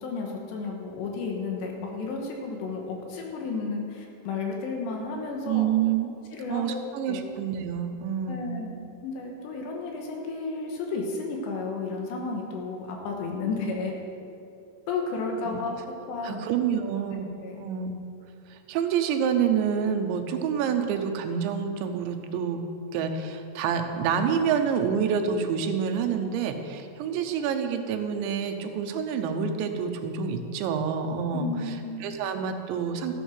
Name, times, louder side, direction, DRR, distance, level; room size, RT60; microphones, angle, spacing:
voice 1, 0.0-5.7 6.3-6.8 7.1-7.3 8.3-8.7 9.0-13.9 14.9-16.4 17.1-17.7 31.3-32.1, left 4 dB, 75° left, 1 dB, 3.3 m, -32 dB
voice 2, 5.5-6.1 6.5-8.6 15.5-15.6 16.2-17.3 17.6-17.9 18.5-22.6 22.9-31.8 32.0-33.1, right 7 dB, 80° right, 6 dB, 3.1 m, -27 dB
13.5 x 8.0 x 6.3 m, 2.5 s
omnidirectional pair, 5.3 m